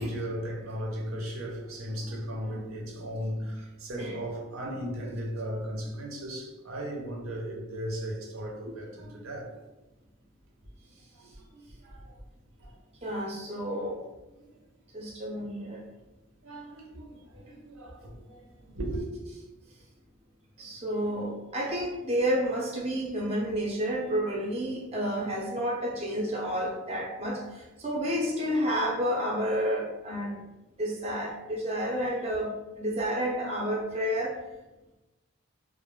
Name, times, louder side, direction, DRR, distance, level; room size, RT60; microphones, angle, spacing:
voice 1, 0.0-9.6 11.1-12.1 12.6-12.8 14.4-14.5 16.4-19.0, equal, 85° right, 0.6 m, -36 dB
voice 2, 13.0-14.0 14.9-15.8 20.6-30.3 30.8-34.4, equal, 30° right, 0.4 m, -30 dB
2.2 x 2.0 x 3.0 m
head